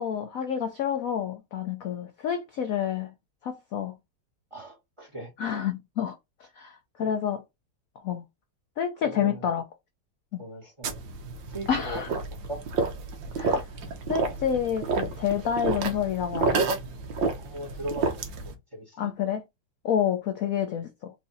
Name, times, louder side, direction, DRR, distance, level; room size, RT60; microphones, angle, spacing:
voice 1, 0.0-3.1 3.4-4.0 5.4-6.1 6.6-7.4 8.0-8.2 8.8-9.6 10.3-10.4 11.7-12.1 13.4-13.6 14.1-16.6 19.0-19.4 19.8-21.1, left 8 dB, 75° left, 0.8 m, -28 dB
voice 2, 4.5-5.3 7.0-7.1 9.0-9.5 10.4-11.0 11.5-12.2 12.5-12.6 17.3-19.1, right 1 dB, 20° right, 1.1 m, -38 dB
sound 1, 10.8-18.5, right 4 dB, 65° right, 1.5 m, -30 dB
4.5 x 2.7 x 4.0 m
omnidirectional pair, 2.2 m